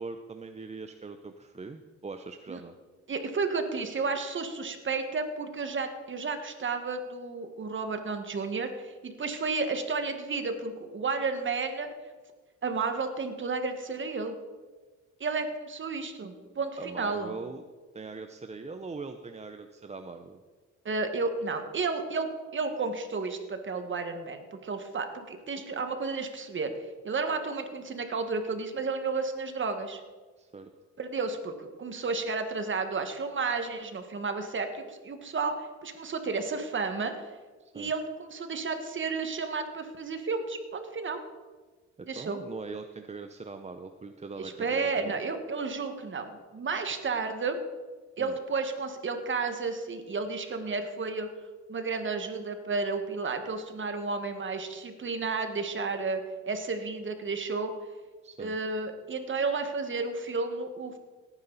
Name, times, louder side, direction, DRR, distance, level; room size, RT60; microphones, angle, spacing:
voice 1, 0.0-2.7 16.8-17.6 17.9-20.4 30.4-30.7 37.6-37.9 42.0-45.2 48.2-48.4 58.2-58.6, right 4 dB, 20° right, 7 dB, 0.7 m, -41 dB
voice 2, 3.1-11.9 12.6-14.3 15.2-17.3 20.8-26.7 27.0-30.0 31.0-37.3 37.7-41.2 42.1-42.4 44.4-47.6 48.2-51.3 51.7-56.2 56.5-57.7 58.4-61.0, right 4 dB, 40° right, 7 dB, 1.7 m, -32 dB
17.5 x 9.9 x 4.1 m, 1.4 s
cardioid pair, 90°, 30 cm